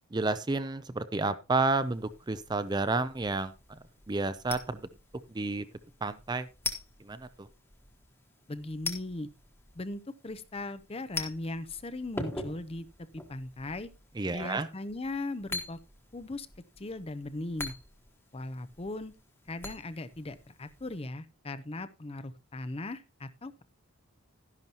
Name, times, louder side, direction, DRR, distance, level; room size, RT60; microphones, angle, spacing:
voice 1, 0.1-3.8 4.1-4.9 5.3-5.6 6.0-6.5 7.0-7.5 14.2-14.7, right 3 dB, 20° right, 0.4 m, -31 dB
sound 1, 1.7-21.1, left 3 dB, 10° left, 1.3 m, -44 dB
voice 2, 8.5-9.3 9.7-12.9 13.3-13.9 14.3-15.8 16.1-16.5 16.8-17.7 18.3-19.1 19.5-23.6, left 2 dB, 25° left, 0.6 m, -38 dB
12.0 x 11.0 x 2.9 m
head